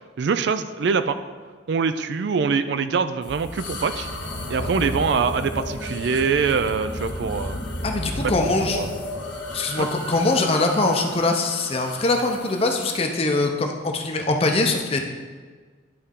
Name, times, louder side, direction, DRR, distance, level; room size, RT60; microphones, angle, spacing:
voice 1, 0.2-1.2 1.7-4.1 4.5-7.6 8.2-8.3 8.7-8.9 9.8-9.9, right 5 dB, 60° right, 11 dB, 0.3 m, -24 dB
sound 1, 3.2-13.0, left 1 dB, 70° left, 1.4 m, -33 dB
voice 2, 7.8-8.8 9.5-15.0, left 2 dB, 30° left, 3 dB, 0.6 m, -22 dB
11.0 x 4.1 x 3.7 m, 1.5 s
head